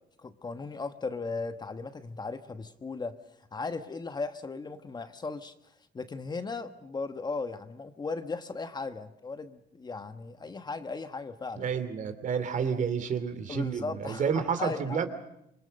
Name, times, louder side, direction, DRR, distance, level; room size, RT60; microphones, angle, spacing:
voice 1, 0.2-3.2 3.5-5.5 5.9-11.6 13.5-15.0, left 4 dB, 25° left, 9 dB, 1.3 m, -37 dB
voice 2, 11.6-15.1, right 6 dB, 50° right, 10 dB, 2.8 m, -30 dB
26.5 x 23.5 x 6.5 m, 0.81 s
cardioid pair, 110°, 17 cm